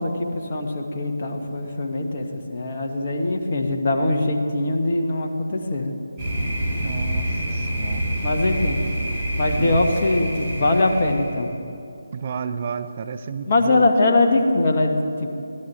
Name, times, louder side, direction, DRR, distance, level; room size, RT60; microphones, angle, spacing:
voice 1, 0.0-5.9 8.2-8.8 9.4-11.5 13.5-15.3, left 2 dB, 35° left, 2 dB, 1.7 m, -22 dB
Thunder, 6.2-11.5, right 1 dB, 5° right, 4.9 m, -26 dB
voice 2, 6.8-8.1 9.6-9.9 12.1-13.9, right 6 dB, 35° right, 9 dB, 0.7 m, -31 dB
23.0 x 16.5 x 3.5 m, 2.8 s
figure-of-eight pair, 150°, 0 cm